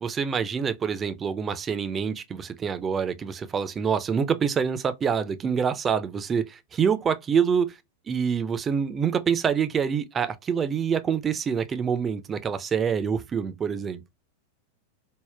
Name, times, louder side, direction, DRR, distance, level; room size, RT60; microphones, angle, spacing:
voice 1, 0.0-7.8 8.1-14.0, right 7 dB, 20° right, 0.3 m, -26 dB
3.5 x 2.1 x 2.2 m
figure-of-eight pair, 90°, 0 cm